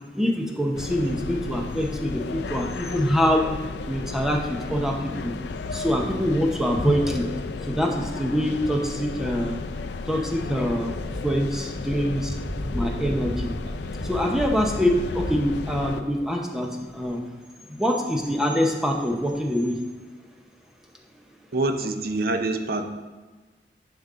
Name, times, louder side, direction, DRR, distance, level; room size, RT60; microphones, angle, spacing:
voice 1, 0.2-3.5 3.9-4.4 4.7-5.3 5.7-7.3 7.7-9.6 10.1-11.0 11.2-12.4 12.7-13.5 14.0-16.7 16.9-17.2 17.7-19.7, equal, 5° right, 1 dB, 0.8 m, -24 dB
sound 1, 0.7-16.0, left 4 dB, 70° left, 0.4 m, -34 dB
sound 2, 12.8-15.5, equal, 35° right, 1.5 m, -39 dB
voice 2, 21.5-22.8, right 2 dB, 55° right, 7 dB, 0.6 m, -25 dB
10.5 x 5.3 x 3.6 m, 1.3 s
head